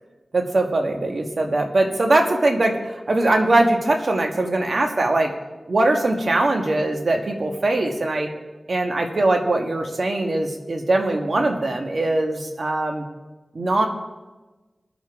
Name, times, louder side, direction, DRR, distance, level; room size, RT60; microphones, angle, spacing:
voice 1, 0.3-5.3 5.7-8.3 8.7-13.0 13.5-13.9, right 2 dB, 65° right, 3 dB, 1.6 m, -21 dB
21.0 x 7.4 x 3.7 m, 1.2 s
cardioid pair, 50°, 0 cm